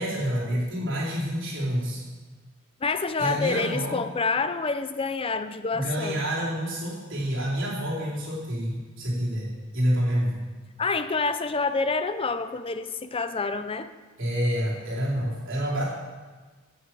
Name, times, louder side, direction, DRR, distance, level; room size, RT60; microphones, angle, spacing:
voice 1, 0.0-2.0 3.2-4.0 5.7-10.4 14.2-15.8, equal, 60° right, -6 dB, 4.1 m, -28 dB
voice 2, 2.8-6.2 10.8-13.9, left 4 dB, 25° left, 11 dB, 0.5 m, -27 dB
9.8 x 8.0 x 7.8 m, 1.4 s
head